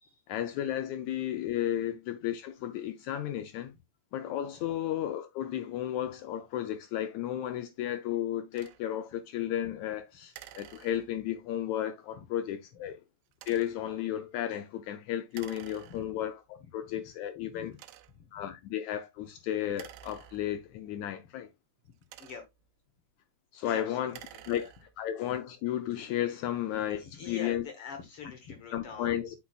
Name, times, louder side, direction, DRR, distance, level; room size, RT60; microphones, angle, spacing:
voice 1, 0.3-3.7 4.1-13.0 13.5-17.7 18.3-21.5 23.5-24.2 24.5-27.6 28.7-29.3, left 11 dB, 85° left, 1.6 m, -33 dB
sound 1, 8.5-8.8 10.3-11.4 13.3-13.9 15.3-16.3 17.0-17.1 17.7-18.3 19.7-20.8 21.8-22.7 24.0-25.1, right 12 dB, 85° right, 2.2 m, -51 dB
voice 2, 16.6-17.1 17.4-17.8 18.1-18.4 22.2-22.4 23.6-24.5 26.9-29.1, left 5 dB, 65° left, 1.4 m, -45 dB
8.4 x 5.8 x 2.3 m
omnidirectional pair, 4.0 m